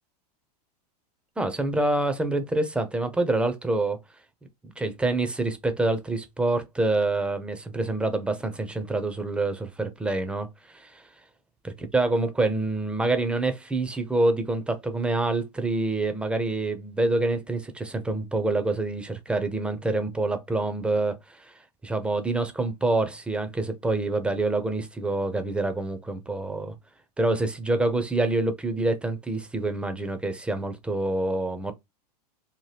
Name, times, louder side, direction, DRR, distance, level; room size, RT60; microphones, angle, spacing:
voice 1, 1.4-4.0 4.6-11.1 11.9-21.5 21.8-26.7 27.2-31.7, right 2 dB, 5° right, 0.4 m, -26 dB
2.8 x 2.1 x 3.2 m
hypercardioid pair, 125°, 21 cm